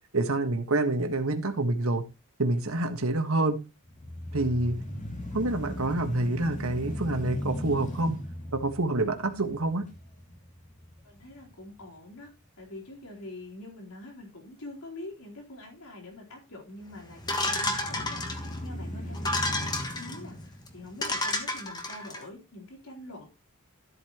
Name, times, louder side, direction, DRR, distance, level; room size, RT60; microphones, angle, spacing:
voice 1, 0.1-2.0 2.4-3.6 4.3-4.8 5.3-8.2 8.5-9.9, right 2 dB, 75° right, 7 dB, 1.5 m, -27 dB
sound 1, 3.8-12.0 12.5-12.6 17.1-21.6, left 1 dB, 35° left, 2.7 m, -38 dB
voice 2, 11.0-23.3, left 1 dB, 85° left, 0 dB, 4.0 m, -45 dB
sound 2, 17.3-18.6 19.1-20.2 20.7-20.8 21.0-22.2, left 2 dB, 20° left, 1.4 m, -30 dB
13.0 x 8.2 x 3.0 m, 0.27 s
head